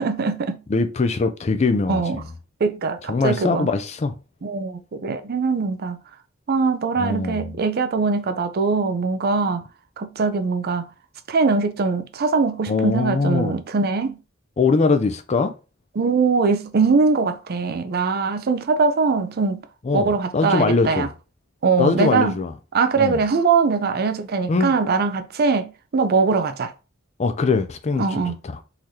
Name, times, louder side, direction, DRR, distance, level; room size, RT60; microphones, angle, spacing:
voice 1, 0.0-0.6 1.9-2.2 2.6-3.7 4.4-6.0 6.5-9.6 10.0-10.9 11.3-14.2 16.0-19.6 19.9-21.1 21.6-22.3 22.7-26.7 28.0-28.4, right 4 dB, 50° right, 0.5 m, -21 dB
voice 2, 0.7-2.2 3.1-4.2 7.0-7.5 12.7-13.5 14.6-15.6 19.8-21.1 21.8-22.5 23.0-23.2 24.5-24.7 27.2-28.2, left 4 dB, 35° left, 0.4 m, -22 dB
3.9 x 3.1 x 2.7 m
head